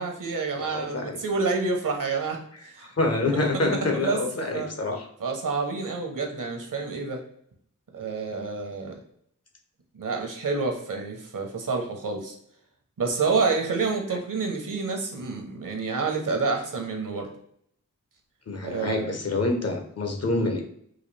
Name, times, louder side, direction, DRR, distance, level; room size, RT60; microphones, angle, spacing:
voice 1, 0.0-2.9 3.3-4.7 5.2-7.2 7.9-9.0 9.9-12.3 13.0-17.3 18.6-19.1, right 4 dB, 70° right, 3 dB, 0.9 m, -28 dB
voice 2, 0.6-1.2 2.8-5.1 14.1-14.2 18.5-20.6, left 2 dB, 50° left, 4 dB, 0.8 m, -27 dB
4.0 x 2.3 x 3.2 m, 0.67 s
wide cardioid pair, 50°, 33 cm